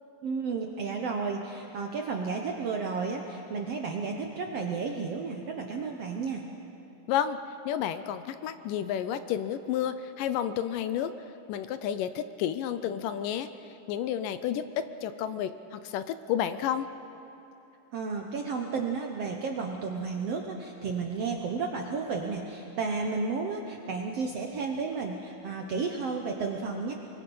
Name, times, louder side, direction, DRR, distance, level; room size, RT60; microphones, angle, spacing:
voice 1, 0.2-6.4 17.9-26.9, right 4 dB, 70° right, 2 dB, 1.5 m, -32 dB
voice 2, 7.7-11.1 11.5-13.5 13.9-16.9, left 10 dB, 80° left, 11 dB, 2.1 m, -31 dB
24.0 x 23.5 x 5.5 m, 2.9 s
omnidirectional pair, 4.1 m